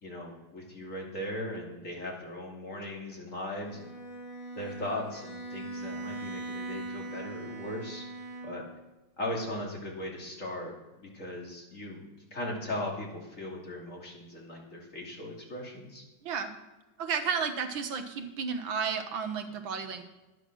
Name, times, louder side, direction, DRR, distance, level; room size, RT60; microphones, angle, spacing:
voice 1, 0.0-3.9 4.5-8.0 8.4-8.6 9.2-10.7 11.0-12.0 12.3-16.0, left 1 dB, 40° left, -1 dB, 3.2 m, -38 dB
Bowed string instrument, 3.6-8.9, right 2 dB, 75° left, 4.5 m, -41 dB
voice 2, 17.0-20.0, right 6 dB, 75° right, 7 dB, 2.0 m, -32 dB
12.5 x 10.0 x 6.2 m, 1.1 s
omnidirectional pair, 2.2 m